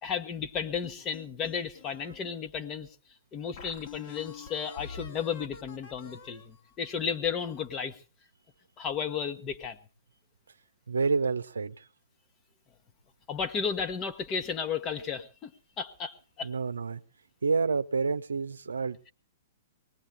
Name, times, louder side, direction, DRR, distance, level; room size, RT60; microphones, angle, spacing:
voice 1, 0.0-2.9 3.3-8.0 8.8-9.8 13.3-15.5 15.8-16.5, left 6 dB, 30° left, 1.3 m, -33 dB
sound 1, 0.8-2.4 2.9-3.0 3.6-7.7, left 6 dB, 55° left, 2.4 m, -47 dB
voice 2, 10.9-11.8 16.4-17.0 17.4-19.0, right 4 dB, 85° right, 0.6 m, -28 dB
23.5 x 19.0 x 2.2 m
hypercardioid pair, 115°, 0 cm